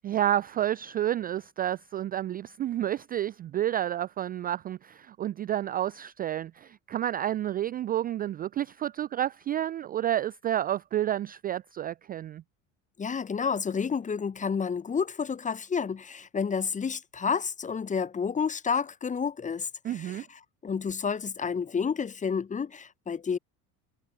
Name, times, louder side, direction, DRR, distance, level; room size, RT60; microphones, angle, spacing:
voice 1, 0.0-12.4 19.8-20.2, right 11 dB, 20° right, 0.4 m, -30 dB
voice 2, 13.0-20.3 20.6-23.4, left 6 dB, 15° left, 0.8 m, -30 dB
figure-of-eight pair, 65°, 48 cm